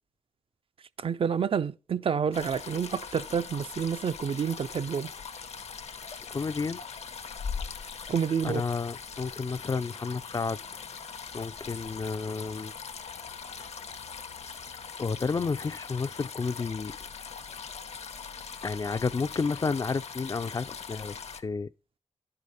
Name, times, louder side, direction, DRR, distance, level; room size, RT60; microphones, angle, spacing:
voice 1, 1.0-5.1 8.1-8.6, right 7 dB, 50° right, 0.4 m, -29 dB
sound 1, 2.3-21.4, left 6 dB, 65° left, 0.8 m, -41 dB
voice 2, 6.3-6.8 8.4-10.6 11.3-12.7 13.6-13.7 15.0-17.0 18.6-21.7, left 4 dB, 35° left, 0.4 m, -31 dB
11.0 x 4.9 x 4.0 m
wide cardioid pair, 100°, 12 cm